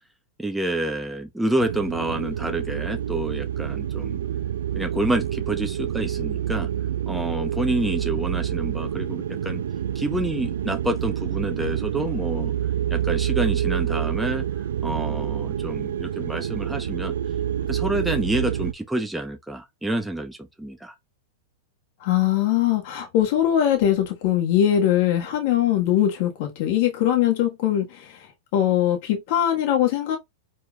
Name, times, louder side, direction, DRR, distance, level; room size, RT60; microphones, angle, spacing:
voice 1, 0.4-4.2 4.8-6.7 7.1-9.6 9.9-12.5 12.9-14.4 14.8-17.2 17.7-20.9, right 1 dB, 5° right, 0.8 m, -28 dB
sound 1, 1.6-18.7, right 10 dB, 75° right, 0.5 m, -27 dB
voice 2, 22.0-28.0 28.5-30.2, left 11 dB, 55° left, 1.4 m, -21 dB
4.6 x 4.3 x 2.3 m
hypercardioid pair, 110°, 0 cm